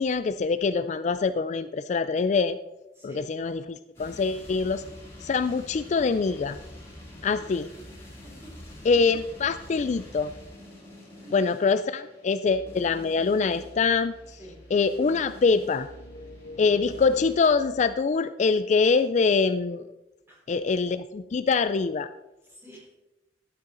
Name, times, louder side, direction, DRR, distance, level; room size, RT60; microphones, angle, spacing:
voice 1, 0.0-2.6 3.0-4.8 5.2-6.6 7.2-7.7 8.8-10.3 11.3-14.4 14.7-15.9 16.6-19.8 20.5-22.1, left 4 dB, 40° left, 12 dB, 0.3 m, -24 dB
voice 2, 2.9-3.3 7.3-7.5 8.2-9.0 11.2-11.6 14.4-14.6 20.3-20.4 22.5-22.9, right 1 dB, 15° right, -4 dB, 4.1 m, -49 dB
sound 1, 3.9-17.4, left 1 dB, 15° left, 3.6 m, -47 dB
sound 2, 12.4-17.9, equal, 70° left, 1.6 m, -47 dB
12.0 x 8.5 x 3.8 m, 0.98 s
head